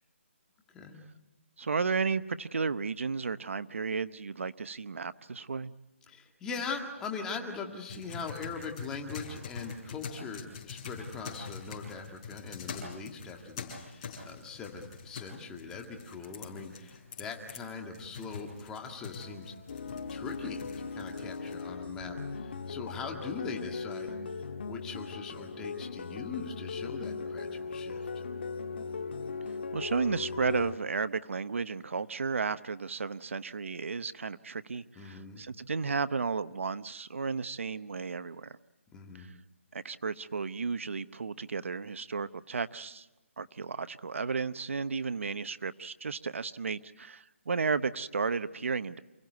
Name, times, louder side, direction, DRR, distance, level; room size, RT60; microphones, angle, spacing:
voice 1, 1.6-5.7 29.7-38.6 39.1-39.3 39.7-43.1 43.4-49.0, right 5 dB, 70° right, 13 dB, 0.9 m, -33 dB
voice 2, 6.1-28.3 35.0-35.4 38.9-39.3, left 4 dB, 10° left, 3 dB, 1.9 m, -41 dB
sound 1, 7.9-21.6, left 5 dB, 25° left, 6.7 m, -45 dB
sound 2, 19.7-30.8, left 4 dB, 50° left, 1.6 m, -38 dB
29.0 x 16.5 x 9.4 m, 1.1 s
hypercardioid pair, 170°, 7 cm